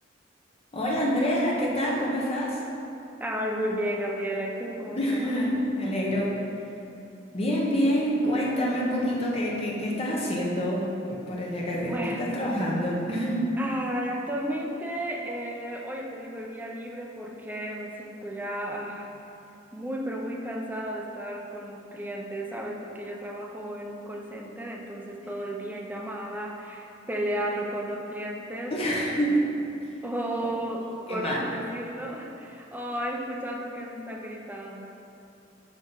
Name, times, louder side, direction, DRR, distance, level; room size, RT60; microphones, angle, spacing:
voice 1, 0.7-2.6 5.0-6.3 7.3-13.5 28.7-29.4 30.8-31.4, equal, 30° left, -4 dB, 0.9 m, -27 dB
voice 2, 3.2-5.3 11.9-12.3 13.6-19.2 19.7-29.4 30.0-34.9, equal, 10° right, 0 dB, 0.5 m, -33 dB
5.9 x 5.0 x 4.0 m, 2.9 s
head